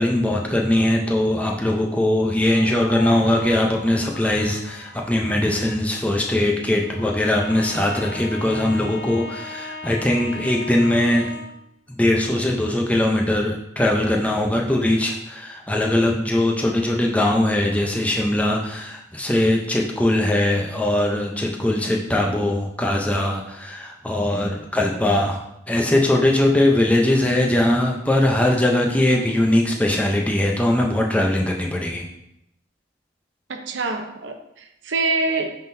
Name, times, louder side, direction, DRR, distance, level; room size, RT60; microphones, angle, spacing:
voice 1, 0.0-11.4 11.9-32.1, left 1 dB, 5° left, 0 dB, 0.6 m, -21 dB
sound 1, 1.9-5.9, left 3 dB, 85° left, 0.8 m, -39 dB
Bowed string instrument, 6.8-11.6, left 2 dB, 55° left, 1.9 m, -36 dB
voice 2, 33.5-35.6, right 3 dB, 65° right, 5 dB, 0.7 m, -25 dB
9.5 x 3.8 x 2.7 m, 0.83 s
head